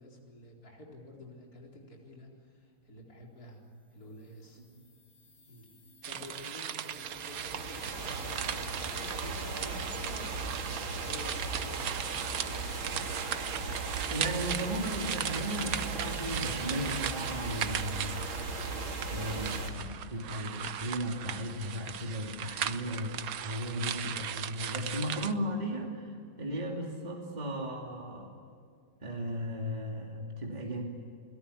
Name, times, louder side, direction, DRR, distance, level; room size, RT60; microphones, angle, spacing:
voice 1, 0.0-3.6 3.9-4.6 5.5-5.7 6.0-13.2 22.5-22.9, left 1 dB, 50° left, -1 dB, 4.7 m, -50 dB
sound 1, 3.7-11.6, left 1 dB, 80° left, 6.5 m, -59 dB
sound 2, 6.0-25.3, right 9 dB, 60° right, 1.1 m, -38 dB
sound 3, 7.0-19.7, right 3 dB, 90° right, 3.5 m, -37 dB
voice 2, 14.1-18.3 19.1-23.1 23.4-28.3 29.0-30.8, equal, 20° right, 0 dB, 2.8 m, -36 dB
29.5 x 17.5 x 10.0 m, 2.3 s
omnidirectional pair, 2.1 m